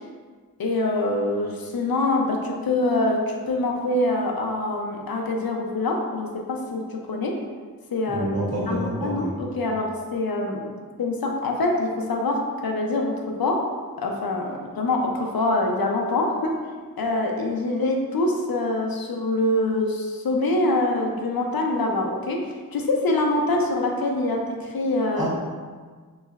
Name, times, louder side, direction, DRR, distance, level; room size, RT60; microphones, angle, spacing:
voice 1, 0.6-7.4 7.9-8.3 8.7-10.7 11.0-13.6 14.0-16.5 17.0-25.3, left 2 dB, 70° left, 1 dB, 0.6 m, -25 dB
voice 2, 8.1-9.4 25.1-25.3, right 1 dB, 45° right, -8 dB, 1.4 m, -28 dB
3.7 x 3.1 x 2.3 m, 1.5 s
wide cardioid pair, 45°, 37 cm